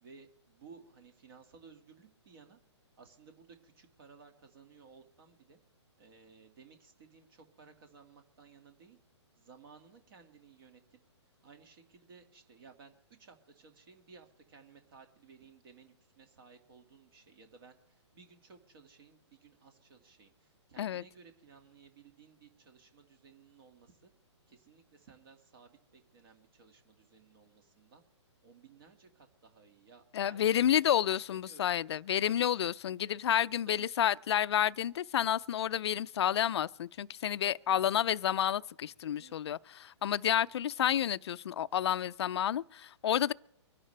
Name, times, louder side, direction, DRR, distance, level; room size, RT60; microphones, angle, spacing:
voice 1, 0.0-2.6 3.0-5.6 6.0-9.0 9.4-24.1 24.5-28.0 28.4-30.9 31.3-31.7 32.2-32.7 33.6-34.1 37.7-38.0 39.2-39.6 40.4-40.5, right 5 dB, 50° right, 2.1 m, -58 dB
voice 2, 30.1-43.3, left 10 dB, 60° left, 0.5 m, -30 dB
24.5 x 11.0 x 3.3 m
hypercardioid pair, 140°, 15 cm